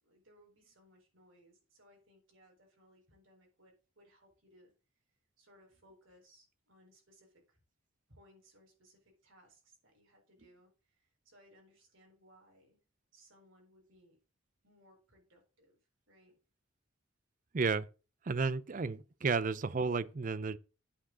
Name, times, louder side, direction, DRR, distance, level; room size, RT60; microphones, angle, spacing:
voice 1, 0.0-4.7 5.4-7.6 8.1-12.8 13.1-14.2 14.6-16.4, equal, 70° right, 4.1 m, -64 dB
voice 2, 17.5-17.9 18.2-20.6, right 4 dB, 40° right, 0.5 m, -32 dB
8.6 x 4.9 x 7.1 m
head